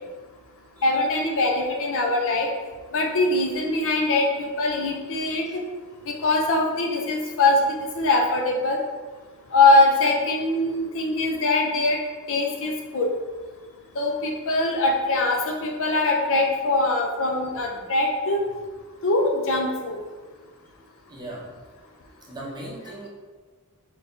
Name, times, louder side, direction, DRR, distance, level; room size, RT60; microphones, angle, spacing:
voice 1, 0.8-2.5 2.9-5.4 6.1-8.8 9.5-12.0 12.3-13.1 14.0-18.4 19.0-20.0, left 2 dB, 60° left, 1 dB, 0.6 m, -22 dB
voice 2, 21.1-21.5 22.3-23.1, right 1 dB, 20° right, -3 dB, 0.8 m, -38 dB
4.1 x 3.8 x 2.7 m, 1.4 s
head